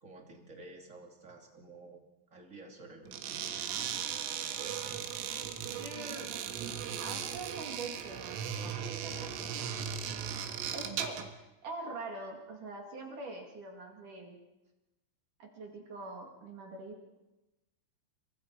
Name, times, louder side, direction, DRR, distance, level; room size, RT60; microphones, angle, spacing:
voice 1, 0.0-2.0 2.3-4.2, right 2 dB, 25° right, 1 dB, 1.8 m, -52 dB
sound 1, 3.1-11.3, right 8 dB, 85° right, 4.1 m, -37 dB
voice 2, 5.6-9.9 10.7-14.4 15.4-17.2, right 3 dB, 50° right, 1 dB, 3.1 m, -44 dB
29.0 x 23.5 x 4.8 m, 0.99 s
omnidirectional pair, 5.8 m